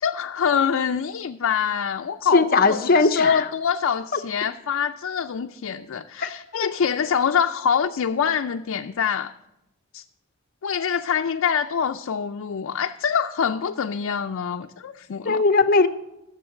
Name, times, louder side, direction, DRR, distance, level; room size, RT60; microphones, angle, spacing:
voice 1, 0.0-9.3 9.9-10.0 10.6-15.4, left 7 dB, 75° left, 5 dB, 0.4 m, -25 dB
voice 2, 2.3-3.4 6.2-6.3 6.5-6.7 15.3-15.9, left 3 dB, 45° left, 9 dB, 0.7 m, -18 dB
13.5 x 7.2 x 6.2 m, 0.90 s
head